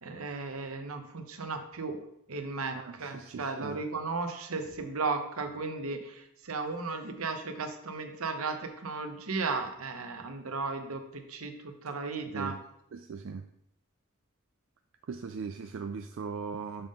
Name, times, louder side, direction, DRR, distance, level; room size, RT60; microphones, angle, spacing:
voice 1, 0.0-2.0 2.3-12.5, right 4 dB, 90° right, 6 dB, 0.9 m, -35 dB
voice 2, 2.7-3.8 12.3-12.6 12.9-13.5 15.1-16.9, right 5 dB, 65° right, 6 dB, 0.4 m, -39 dB
6.9 x 3.7 x 5.3 m, 0.76 s
head